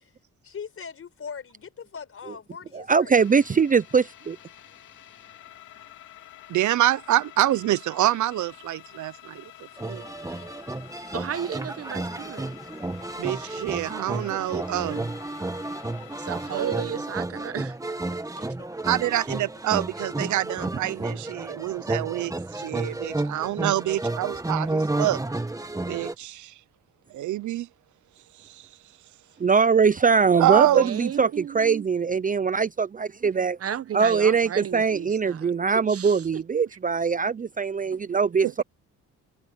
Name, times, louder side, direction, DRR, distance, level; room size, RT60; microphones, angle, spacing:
voice 1, 0.4-3.2 9.9-10.7 18.3-18.8 29.3-29.4, left 6 dB, 45° left, 4.8 m, -42 dB
voice 2, 2.9-4.4 29.4-33.6 33.9-38.6, right 5 dB, 25° right, 0.7 m, -22 dB
sound 1, 3.2-16.9, left 14 dB, 75° left, 3.2 m, -48 dB
voice 3, 6.5-9.4 9.8-10.0 13.2-15.1 16.5-16.9 18.9-25.2 25.9-26.5 27.1-27.7 30.4-30.9 31.2-31.3 38.4-38.6, right 14 dB, 75° right, 0.9 m, -26 dB
sound 2, 9.8-26.1, right 2 dB, 10° right, 1.8 m, -32 dB
voice 4, 11.1-12.5 16.2-17.8 30.6-31.8 33.6-35.5 35.8-36.4, right 9 dB, 50° right, 1.1 m, -34 dB
cardioid pair, 90°, 30 cm